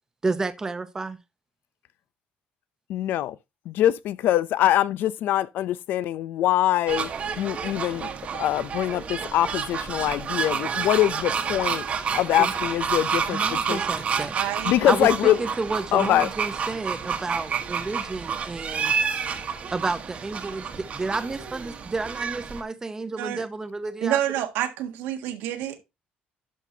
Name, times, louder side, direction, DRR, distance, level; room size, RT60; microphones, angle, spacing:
voice 1, 0.2-1.2 12.4-12.5 13.3-14.4 14.9-19.0 19.7-24.2, right 3 dB, 15° right, 0.7 m, -30 dB
voice 2, 2.9-3.4 3.7-7.1 7.4-11.8 12.1-13.8 14.7-15.4 15.9-16.3, left 13 dB, 65° left, 0.5 m, -23 dB
sound 1, 6.9-22.6, right 6 dB, 40° right, 1.2 m, -29 dB
voice 3, 14.3-14.7 23.2-23.4 24.0-25.8, right 11 dB, 90° right, 1.5 m, -28 dB
11.0 x 5.9 x 2.8 m
cardioid pair, 135°, 4 cm